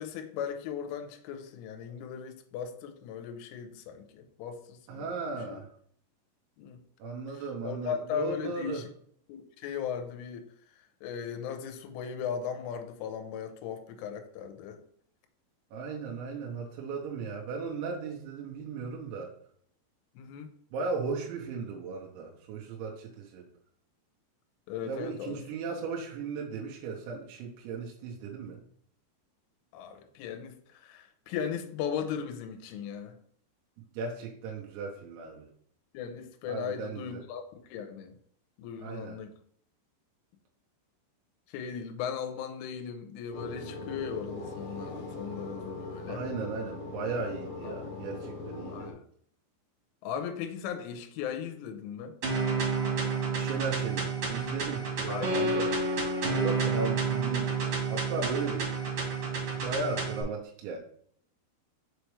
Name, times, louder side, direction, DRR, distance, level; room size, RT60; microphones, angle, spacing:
voice 1, 0.0-5.1 5.5-5.6 6.6-6.8 7.3-8.9 9.3-10.5 11.0-14.8 20.2-20.5 24.7-25.4 29.7-33.2 35.9-37.4 37.7-38.2 38.6-39.3 41.5-46.2 47.6-47.8 48.7-49.0 50.0-52.2 55.1-55.4, left 7 dB, 85° left, 6 dB, 3.2 m, -37 dB
voice 2, 4.9-5.7 7.0-8.8 15.7-19.3 20.7-23.5 24.8-28.6 33.9-35.5 36.5-37.2 38.8-39.2 46.1-48.9 53.4-55.7 56.3-58.8 59.6-60.8, right 4 dB, 80° right, -1 dB, 3.0 m, -36 dB
sound 1, 43.3-48.9, left 2 dB, 65° left, 2.5 m, -40 dB
sound 2, 52.2-60.2, right 4 dB, 45° right, 2.2 m, -30 dB
6.9 x 4.5 x 3.2 m, 0.62 s
omnidirectional pair, 5.6 m